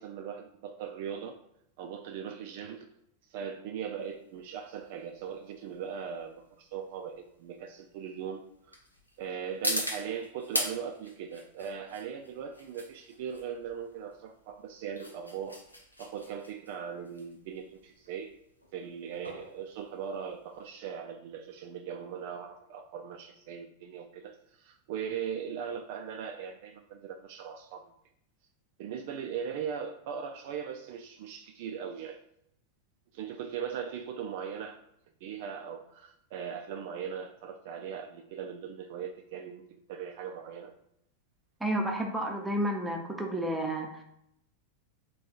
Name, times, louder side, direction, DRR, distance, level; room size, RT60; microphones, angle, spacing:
voice 1, 0.0-1.4 1.8-2.9 3.3-8.4 8.7-8.8 9.2-15.6 16.0-18.3 18.7-27.8 28.8-32.2 33.1-34.8 35.2-40.7, right 7 dB, 50° right, 5 dB, 0.3 m, -39 dB
sound 1, 4.0-20.7, left 1 dB, 85° left, 0.7 m, -40 dB
voice 2, 41.6-44.0, right 1 dB, 5° right, 2 dB, 0.7 m, -31 dB
3.5 x 2.2 x 4.3 m, 0.75 s
figure-of-eight pair, 90°, 0 cm